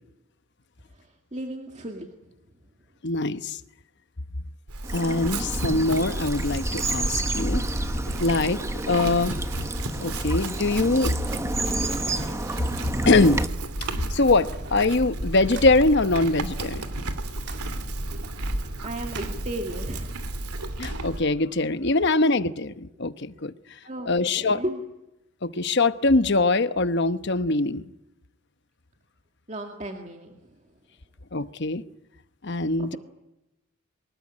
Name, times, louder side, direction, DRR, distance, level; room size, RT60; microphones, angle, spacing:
voice 1, 0.9-2.3 18.8-20.3 22.0-22.1 23.8-24.8 29.5-30.5 32.8-33.0, right 1 dB, 30° right, 2.1 m, -35 dB
voice 2, 3.0-3.6 4.9-7.6 8.2-8.6 8.9-9.4 10.0-11.1 13.1-13.4 14.1-16.9 20.8-23.5 24.1-24.6 25.4-27.8 31.3-31.8 32.4-33.0, left 2 dB, 50° left, 1.0 m, -23 dB
Chewing mastication / Livestock farm animals working animals, 4.7-21.2, right 1 dB, 85° right, 2.8 m, -33 dB
Bird vocalization bird call bird song / Stream, 4.8-13.5, right 2 dB, 15° right, 1.0 m, -31 dB
sound 1, 11.8-21.4, right 2 dB, 50° right, 3.2 m, -44 dB
24.0 x 20.0 x 9.8 m
head